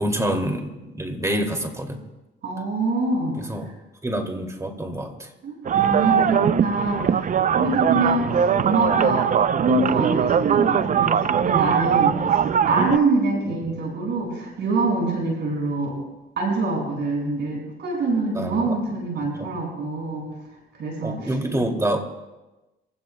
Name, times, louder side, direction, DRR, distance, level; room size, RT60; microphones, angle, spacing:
voice 1, 0.0-2.0 3.4-3.7 4.0-5.3 7.9-8.0 13.5-13.6 18.3-18.7 19.4-19.5 21.0-22.1, right 1 dB, 15° right, 3 dB, 2.5 m, -27 dB
voice 2, 2.4-3.7 5.4-7.3 7.5-16.0 16.4-20.3 20.7-21.6, right 3 dB, 65° right, -1 dB, 5.8 m, -25 dB
sound 1, 5.7-13.0, right 8 dB, 40° right, 0.5 m, -21 dB
27.0 x 16.0 x 2.2 m, 1.1 s
cardioid pair, 90°, 20 cm